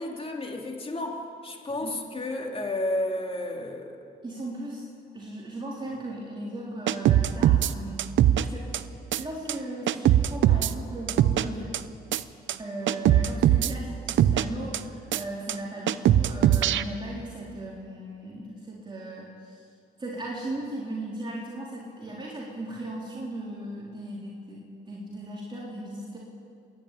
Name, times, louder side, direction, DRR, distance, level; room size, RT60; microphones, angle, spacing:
voice 1, 0.0-4.1, left 1 dB, 30° left, 1 dB, 3.2 m, -32 dB
voice 2, 4.2-4.9 5.1-8.7 9.2-11.8 12.6-19.6 20.0-26.2, right 1 dB, 25° right, -5 dB, 3.9 m, -37 dB
sound 1, 6.9-7.7 8.0-8.4 8.7-8.8 9.1-9.2 9.5-9.6 9.9-10.7 11.1-11.4 11.7-11.8 12.1-12.2 12.5-12.6 12.9-13.7 14.1-14.4 14.7-14.8 15.1-15.2 15.5-15.6 15.9-16.8, right 12 dB, 70° right, 0.7 m, -21 dB
29.0 x 11.5 x 8.8 m, 2.4 s
cardioid pair, 90°, 20 cm